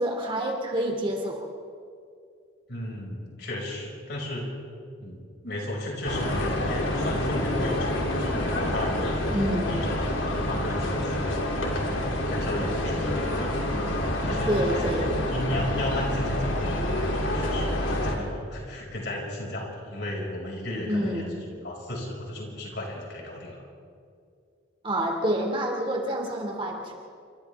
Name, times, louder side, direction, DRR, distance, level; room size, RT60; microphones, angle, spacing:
voice 1, 0.0-1.5 9.3-10.0 14.5-15.2 20.8-21.4 24.8-26.9, right 1 dB, 25° right, 1 dB, 2.5 m, -28 dB
voice 2, 2.7-4.5 5.0-10.0 10.5-12.0 12.3-13.5 13.9-14.9 15.3-21.2 21.6-23.6, left 1 dB, 60° left, -2 dB, 5.9 m, -34 dB
sound 1, 6.0-18.2, left 1 dB, 80° left, 3.2 m, -27 dB
28.5 x 26.5 x 3.6 m, 2.4 s
head